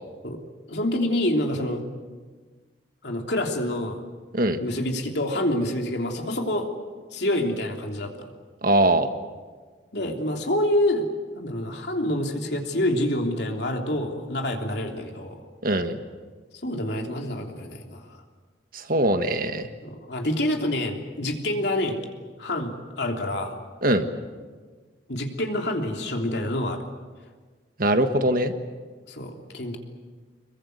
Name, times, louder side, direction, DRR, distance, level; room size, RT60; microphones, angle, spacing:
voice 1, 0.7-1.8 3.0-4.0 4.6-6.7 7.1-8.3 9.9-11.1 11.3-15.4 16.6-18.2 19.8-22.1 22.4-23.6 25.1-26.8 29.1-29.8, left 1 dB, 65° left, 3 dB, 3.2 m, -27 dB
voice 2, 8.6-9.1 15.6-16.0 18.7-19.7 23.8-24.0 27.8-28.5, right 1 dB, 50° right, 8 dB, 1.6 m, -21 dB
26.5 x 22.5 x 8.1 m, 1.5 s
head